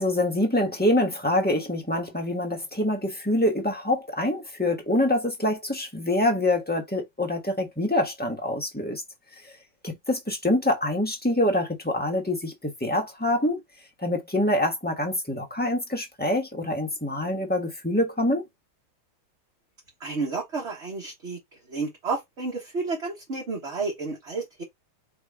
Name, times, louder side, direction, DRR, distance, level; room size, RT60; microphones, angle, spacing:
voice 1, 0.0-9.0 9.8-13.6 14.0-18.4, left 1 dB, 5° left, 0.8 m, -25 dB
voice 2, 20.0-21.4 21.7-24.6, right 4 dB, 35° right, 1.4 m, -31 dB
4.8 x 3.1 x 3.5 m
omnidirectional pair, 2.3 m